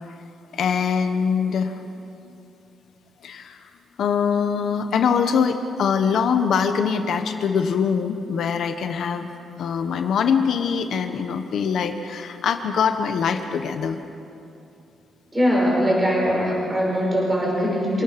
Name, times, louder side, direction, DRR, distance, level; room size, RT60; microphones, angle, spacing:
voice 1, 0.5-2.3 3.2-3.6 4.0-9.3 9.6-14.0, left 6 dB, 60° left, 7 dB, 1.1 m, -23 dB
voice 2, 15.3-18.0, equal, 15° right, -4 dB, 5.7 m, -21 dB
26.5 x 17.5 x 5.9 m, 2.7 s
wide cardioid pair, 175°, 0 cm